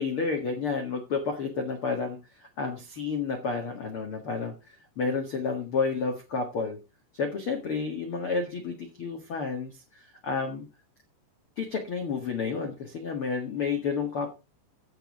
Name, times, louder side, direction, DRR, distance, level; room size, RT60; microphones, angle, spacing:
voice 1, 0.0-4.5 5.0-6.8 7.1-10.7 11.6-14.3, left 5 dB, 55° left, 4 dB, 1.5 m, -30 dB
15.0 x 5.4 x 4.8 m, 0.29 s
omnidirectional pair, 5.0 m